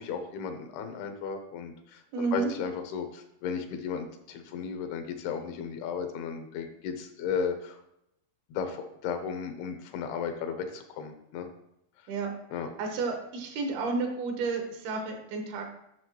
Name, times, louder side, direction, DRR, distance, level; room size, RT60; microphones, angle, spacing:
voice 1, 0.0-7.8 8.5-11.5 12.5-12.7, left 6 dB, 85° left, 6 dB, 2.8 m, -35 dB
voice 2, 2.1-2.5 12.1-12.3 12.8-15.7, right 4 dB, 75° right, 3 dB, 3.1 m, -31 dB
9.8 x 6.4 x 3.0 m, 0.81 s
omnidirectional pair, 4.5 m